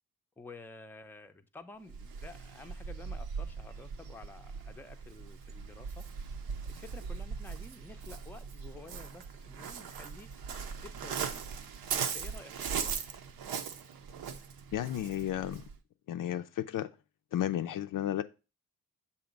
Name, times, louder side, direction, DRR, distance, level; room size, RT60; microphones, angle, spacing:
voice 1, 0.4-6.3 6.7-10.3 10.8-11.5 12.0-13.0, left 3 dB, 5° left, 0.5 m, -51 dB
Waves surf, 1.9-15.8, right 6 dB, 85° right, 0.7 m, -39 dB
voice 2, 14.7-15.6 16.1-16.9 17.3-18.2, left 11 dB, 65° left, 0.5 m, -33 dB
7.0 x 2.8 x 5.1 m
cardioid pair, 105°, 35 cm